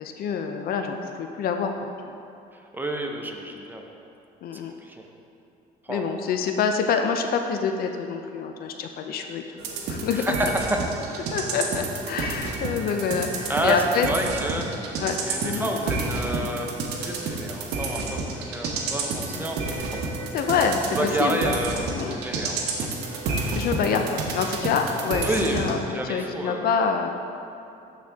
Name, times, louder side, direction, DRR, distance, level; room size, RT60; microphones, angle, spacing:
voice 1, 0.0-2.2 4.4-4.7 5.9-10.4 11.3-14.1 15.0-15.2 15.4-15.7 19.3-19.5 20.3-21.5 21.9-22.4 23.3-25.8 26.0-27.1, left 6 dB, 65° left, 5 dB, 0.5 m, -26 dB
voice 2, 2.7-3.8 4.5-5.0 5.9-6.1 10.2-10.3 13.5-14.7 15.3-19.6 19.9-20.1 21.0-22.9 25.2-26.7, right 1 dB, 10° right, 1 dB, 0.7 m, -29 dB
sound 1, 9.6-25.8, right 3 dB, 90° right, 1.0 m, -30 dB
11.5 x 4.2 x 3.5 m, 2.6 s
cardioid pair, 110°, 17 cm